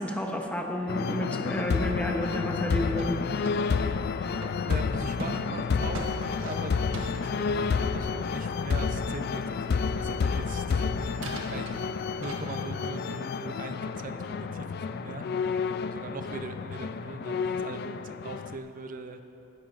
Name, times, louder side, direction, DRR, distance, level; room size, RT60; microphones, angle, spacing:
voice 1, 0.0-3.2, left 1 dB, 5° left, 2 dB, 0.9 m, -31 dB
sound 1, 0.9-18.6, left 5 dB, 55° left, 0.4 m, -30 dB
sound 2, 1.1-3.9 4.4-8.8 10.5-10.6 11.1-12.3, right 1 dB, 75° right, 1.3 m, -42 dB
voice 2, 4.7-15.3 15.8-19.2, right 3 dB, 45° right, 7 dB, 0.6 m, -41 dB
18.5 x 10.5 x 2.5 m, 2.7 s
head